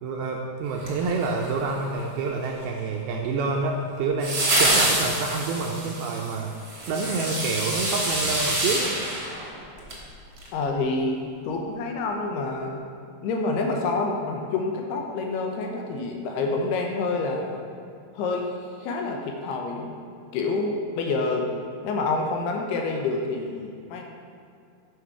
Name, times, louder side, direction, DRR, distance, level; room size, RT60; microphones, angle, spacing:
voice 1, 0.0-6.5 6.9-9.0, right 3 dB, 80° right, 1 dB, 2.3 m, -28 dB
sound 1, 0.8-1.7 4.2-10.0 10.4-10.5, right 1 dB, 35° right, 1.4 m, -26 dB
voice 2, 10.5-12.8 13.2-17.6 18.1-18.5 18.8-19.9 20.3-21.5 21.8-24.0, left 3 dB, 80° left, 1 dB, 2.7 m, -27 dB
10.0 x 6.3 x 4.7 m, 2.4 s
omnidirectional pair, 5.0 m